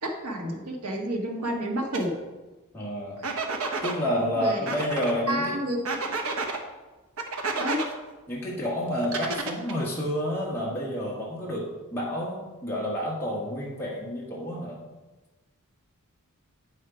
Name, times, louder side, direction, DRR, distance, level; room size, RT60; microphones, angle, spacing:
voice 1, 0.0-2.2 3.3-3.5 4.3-4.8 5.3-5.8 6.2-6.3 7.5-7.8, right 1 dB, 85° right, 2 dB, 1.6 m, -30 dB
sound 1, 1.9-2.0 3.2-4.0 4.7-5.1 5.8-6.6 7.2-7.9 9.0-9.8, right 3 dB, 65° right, 1.1 m, -30 dB
voice 2, 2.7-3.2 3.8-5.5 8.3-14.8, equal, 10° left, -6 dB, 1.4 m, -29 dB
8.5 x 6.4 x 4.9 m, 1.2 s
head